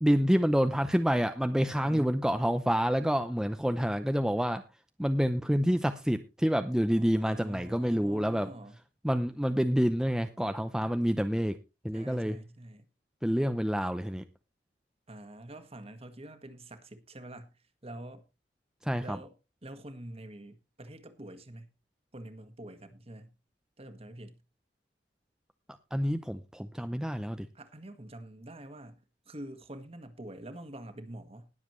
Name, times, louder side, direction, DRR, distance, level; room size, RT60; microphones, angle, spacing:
voice 1, 0.0-4.6 5.0-8.5 9.0-11.6 11.8-12.4 13.2-14.2 18.8-19.2 25.9-27.5, equal, 5° right, 0.6 m, -28 dB
voice 2, 1.8-2.1 6.9-8.8 11.9-12.9 15.1-17.5 17.8-18.2 19.0-19.3 19.6-21.7 22.1-23.3 23.8-24.4 27.5-31.5, right 1 dB, 35° right, 1.6 m, -46 dB
20.0 x 7.3 x 3.1 m
head